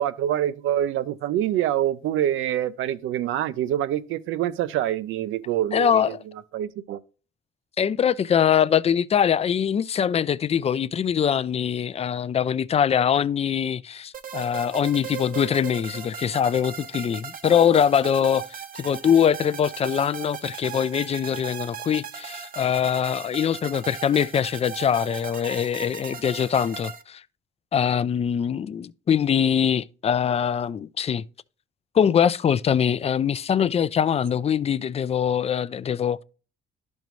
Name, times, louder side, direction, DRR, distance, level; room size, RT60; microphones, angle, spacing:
voice 1, 0.0-6.2 6.5-7.0, right 11 dB, 85° right, 0.5 m, -25 dB
voice 2, 5.7-6.2 7.8-27.2 27.7-31.2 31.9-36.2, left 8 dB, 30° left, 0.3 m, -23 dB
sound 1, 14.1-27.0, right 8 dB, 45° right, 0.7 m, -38 dB
11.5 x 5.3 x 3.1 m
cardioid pair, 90°, 20 cm